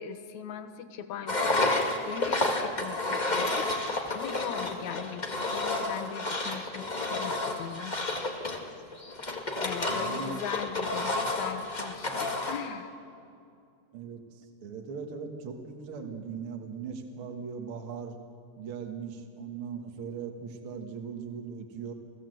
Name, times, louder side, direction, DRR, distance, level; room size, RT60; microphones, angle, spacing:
voice 1, 0.0-1.7 2.0-3.8 4.1-8.0 9.6-12.9, left 8 dB, 65° left, 9 dB, 2.3 m, -39 dB
Engine, 1.3-12.7, left 2 dB, 30° left, 0.7 m, -30 dB
voice 2, 9.9-10.4 13.9-18.2 18.6-21.9, right 6 dB, 45° right, 2 dB, 2.0 m, -39 dB
29.5 x 17.0 x 7.8 m, 2.5 s
omnidirectional pair, 3.9 m